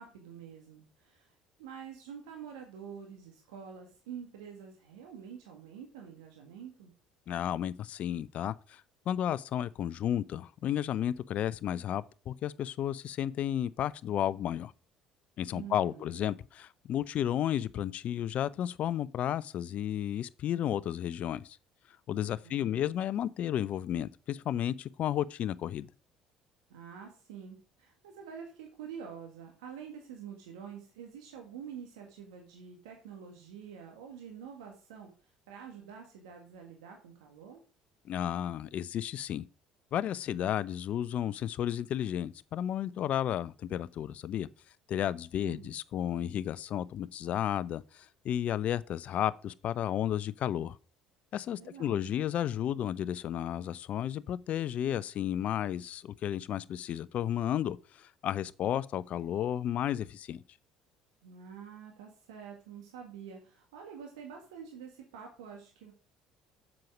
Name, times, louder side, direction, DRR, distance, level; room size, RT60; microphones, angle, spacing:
voice 1, 0.0-6.9 15.5-16.2 22.2-23.0 26.7-37.6 45.4-45.7 51.5-52.1 61.2-65.9, right 7 dB, 75° right, 1.7 m, -47 dB
voice 2, 7.3-14.7 15.4-21.6 22.1-25.9 38.0-39.5 39.9-44.5 44.9-50.8 51.3-60.4, left 10 dB, 55° left, 0.6 m, -33 dB
7.7 x 7.4 x 5.0 m
hypercardioid pair, 60°, 3 cm